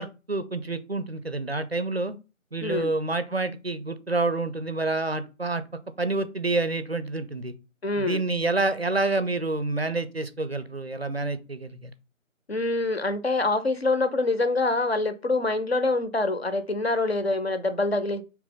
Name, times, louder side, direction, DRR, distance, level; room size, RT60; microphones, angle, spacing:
voice 1, 0.0-2.1 2.5-5.6 6.0-7.5 8.0-11.9, right 2 dB, 50° right, 0.4 m, -28 dB
voice 2, 2.6-2.9 7.8-8.2 12.5-18.2, left 2 dB, 50° left, 0.5 m, -25 dB
4.2 x 2.9 x 3.7 m
figure-of-eight pair, 170°, 40 cm